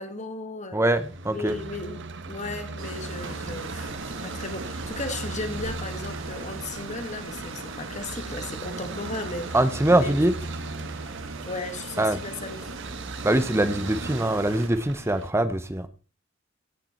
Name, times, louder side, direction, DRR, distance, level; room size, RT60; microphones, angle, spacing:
voice 1, 0.0-0.8 1.3-9.6 9.9-10.1 10.8-10.9 11.5-12.7, left 2 dB, 35° left, 1.9 m, -36 dB
voice 2, 0.7-1.6 9.5-10.4 12.0-12.2 13.2-15.9, right 1 dB, 15° right, 0.8 m, -23 dB
sound 1, 1.0-15.3, right 3 dB, 65° right, 1.1 m, -37 dB
sound 2, 2.8-14.7, right 3 dB, 80° right, 2.0 m, -40 dB
16.0 x 6.7 x 4.4 m
head